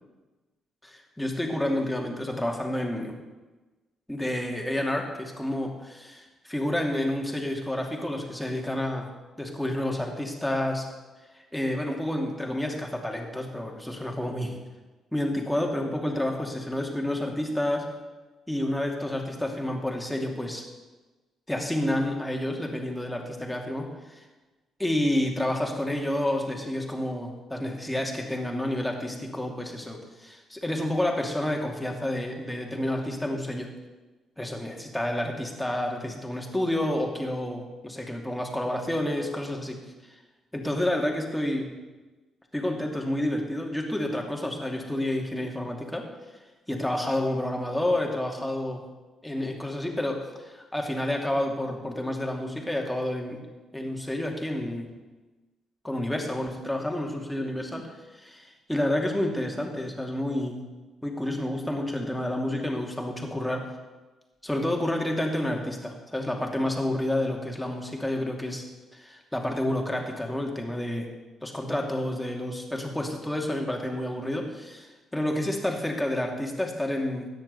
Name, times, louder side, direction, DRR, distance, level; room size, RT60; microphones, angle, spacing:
voice 1, 0.8-3.2 4.1-9.1 9.4-10.9 11.3-14.5 15.1-17.9 18.5-20.6 21.5-24.2 24.8-33.7 34.4-39.8 40.5-41.7 42.5-46.1 46.7-48.9 49.2-53.4 53.7-55.0 55.8-60.6 61.0-63.7 64.4-68.6 68.9-71.1 71.4-77.3, left 1 dB, 5° left, 1 dB, 2.4 m, -29 dB
13.0 x 9.5 x 4.0 m, 1.2 s
figure-of-eight pair, 45°, 0 cm